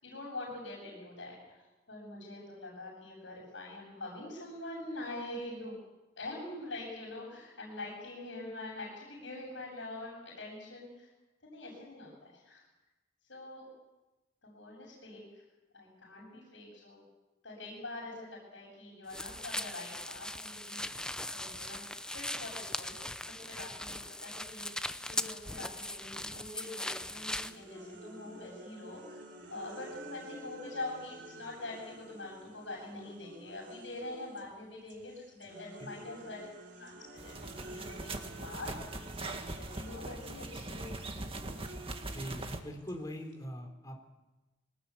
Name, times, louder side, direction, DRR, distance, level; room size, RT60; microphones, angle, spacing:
voice 1, 0.0-1.6 1.9-5.8 6.2-11.1 11.4-12.6 13.3-13.7 14.4-15.4 15.7-17.0 17.4-20.9 21.3-23.2 23.5-24.7 25.1-36.5 36.8-40.9, left 2 dB, 80° left, -5 dB, 7.5 m, -44 dB
sound 1, 19.1-27.6, left 1 dB, 5° left, 0.7 m, -39 dB
sound 2, 27.4-34.5 34.9-43.4, right 1 dB, 70° right, 3.5 m, -52 dB
sound 3, 37.2-42.6, right 2 dB, 30° right, 1.9 m, -41 dB
voice 2, 42.1-44.0, equal, 20° left, 3 dB, 3.6 m, -42 dB
22.5 x 19.5 x 8.5 m, 1.1 s
head